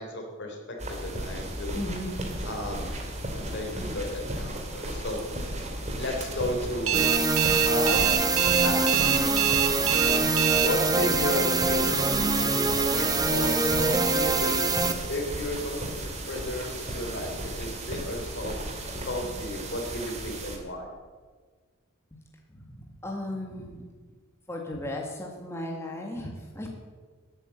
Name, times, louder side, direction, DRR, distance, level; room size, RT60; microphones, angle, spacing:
voice 1, 0.0-1.8 2.5-2.9 3.3-5.2 6.0-7.1 7.7-9.2 10.6-14.6 15.1-18.6 19.1-20.9, left 1 dB, 55° left, 2 dB, 3.6 m, -33 dB
sound 1, 0.8-20.6, right 1 dB, 35° right, 2.7 m, -35 dB
voice 2, 1.7-2.1 22.5-22.7 23.0-23.8 24.5-26.7, left 1 dB, 15° left, 0 dB, 1.8 m, -35 dB
sound 2, 6.9-14.9, right 3 dB, 20° right, 1.3 m, -24 dB
Alarm, 6.9-10.7, right 13 dB, 75° right, 1.3 m, -24 dB
18.5 x 9.1 x 7.8 m, 1.5 s
head